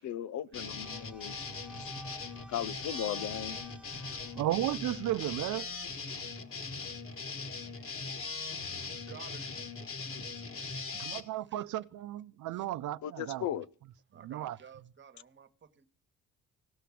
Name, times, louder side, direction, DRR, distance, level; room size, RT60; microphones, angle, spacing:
voice 1, 0.0-1.4 1.8-1.9 2.5-3.6 13.0-13.7, left 10 dB, 70° left, 0.7 m, -37 dB
sound 1, 0.5-11.2, left 4 dB, 45° left, 1.7 m, -40 dB
sound 2, 0.5-6.0, right 1 dB, 5° right, 0.9 m, -53 dB
voice 2, 3.8-4.4 5.9-8.5 8.8-11.6 12.5-12.7 14.1-15.9, right 7 dB, 40° right, 1.4 m, -57 dB
voice 3, 4.3-5.7 11.0-13.4 14.2-14.6, right 14 dB, 80° right, 0.7 m, -34 dB
17.0 x 5.9 x 8.4 m
cardioid pair, 90°, 30 cm